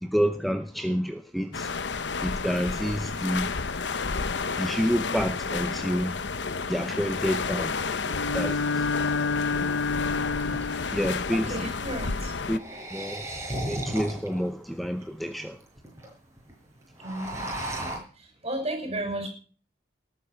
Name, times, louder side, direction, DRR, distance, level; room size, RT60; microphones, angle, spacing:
voice 1, 0.0-1.7 2.2-3.5 4.6-6.2 6.6-7.7 8.3-8.9 9.5-9.8 10.9-11.7 12.5-12.6 12.9-13.3 13.6-15.6, equal, ahead, 8 dB, 0.8 m, -28 dB
sound 1, 1.5-12.6, left 4 dB, 70° left, 0.9 m, -31 dB
Bowed string instrument, 8.0-11.2, left 4 dB, 85° left, 1.2 m, -28 dB
sound 2, 9.7-9.8 10.3-11.5 12.4-14.4 15.0-15.1 15.3-15.4 15.6-16.1 16.4-16.5 16.8-18.0, right 1 dB, 15° right, 6.3 m, -35 dB
voice 2, 11.3-12.3 17.0-17.5 17.8-18.0 18.4-19.3, right 1 dB, 35° right, 4 dB, 6.4 m, -33 dB
19.0 x 9.6 x 5.9 m, 0.41 s
head